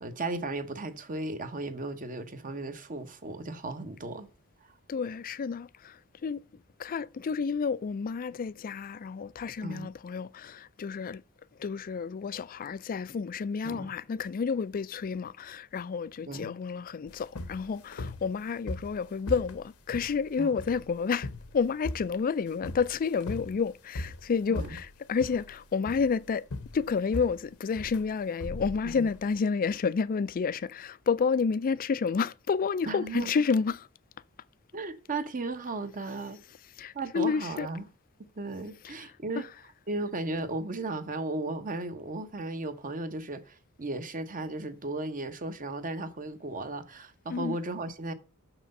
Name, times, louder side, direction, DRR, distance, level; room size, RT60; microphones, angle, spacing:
voice 1, 0.0-4.3 9.6-9.9 13.6-13.9 16.3-16.6 20.4-20.5 24.5-24.8 28.9-29.1 32.9-33.3 34.7-36.4 36.9-37.9 38.4-39.5 39.9-48.1, right 2 dB, 40° right, 0.9 m, -35 dB
voice 2, 4.9-6.4 6.8-11.2 11.6-21.3 21.5-26.5 26.7-33.9 36.8-37.7 38.8-39.0 39.4-39.5 47.3-47.6, left 5 dB, 40° left, 0.3 m, -30 dB
sound 1, 17.1-29.3, left 2 dB, 75° left, 0.9 m, -40 dB
6.7 x 5.9 x 5.3 m
head